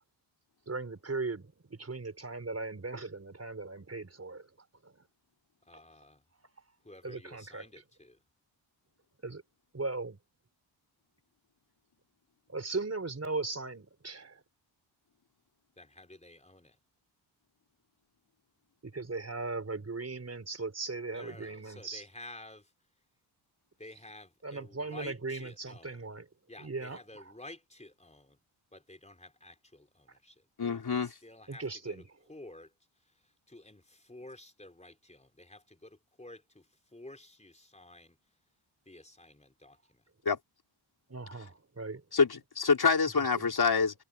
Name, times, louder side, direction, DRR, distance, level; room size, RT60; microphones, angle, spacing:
voice 1, 0.7-4.5 4.8-5.0 7.0-7.8 9.2-9.4 9.7-10.2 12.5-14.4 18.8-22.1 24.4-26.3 26.6-27.3 31.5-32.2 41.1-42.0, right 3 dB, 30° right, 4.7 m, -38 dB
voice 2, 5.7-6.1 6.9-7.8 15.8-16.7 21.1-22.6 23.8-25.1 25.4-25.9 26.5-26.7 27.1-28.2 28.7-29.5 30.6-30.8 31.2-31.6 32.3-32.7 33.5-33.8 34.1-35.6 36.2-36.4 36.9-38.1 38.9-39.7, left 1 dB, 15° left, 4.3 m, -50 dB
voice 3, 30.6-31.1 40.2-40.4 42.1-43.9, left 5 dB, 50° left, 4.8 m, -26 dB
cardioid pair, 85°, 49 cm